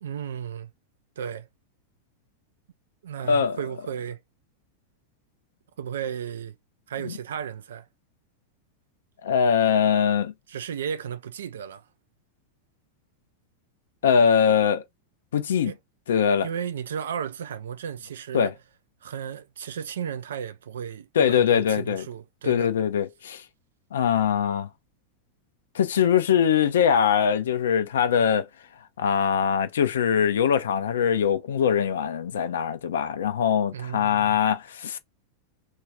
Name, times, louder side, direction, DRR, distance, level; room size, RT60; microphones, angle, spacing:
voice 1, 0.0-0.7 1.2-1.5 3.0-4.2 5.8-6.6 6.9-7.9 10.5-11.8 15.6-15.8 16.4-18.6 19.0-22.7 33.7-34.4, right 8 dB, 65° right, 0.4 m, -34 dB
voice 2, 3.3-3.6 7.0-7.1 9.2-10.3 14.0-14.8 15.3-15.7 16.1-16.5 18.3-18.5 21.2-22.1 22.4-23.4 23.9-24.7 25.7-28.5 29.0-35.0, left 7 dB, 60° left, 0.5 m, -22 dB
2.3 x 2.3 x 3.3 m
figure-of-eight pair, 90°, 0 cm